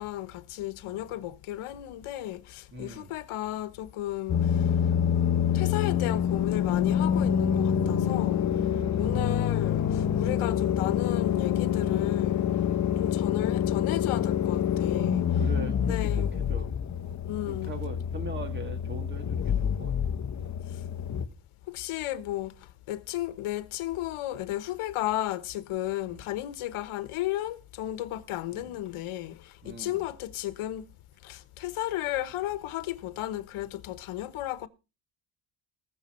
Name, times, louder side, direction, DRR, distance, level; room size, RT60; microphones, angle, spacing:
voice 1, 0.0-4.7 5.1-8.5 9.0-12.5 12.9-15.4 15.8-16.5 17.3-17.7 21.7-30.8 31.2-34.7, left 14 dB, 75° left, 1.2 m, -34 dB
voice 2, 2.7-3.1 8.4-9.2 12.8-13.1 15.4-16.2 16.5-16.7 16.9-17.2 17.5-19.9 20.3-20.6 26.1-26.2 28.5-28.8 29.6-30.0, right 2 dB, 20° right, 2.2 m, -41 dB
sound 1, 4.3-21.3, left 9 dB, 35° left, 0.9 m, -27 dB
19.5 x 7.2 x 4.3 m
cardioid pair, 160°, 50 cm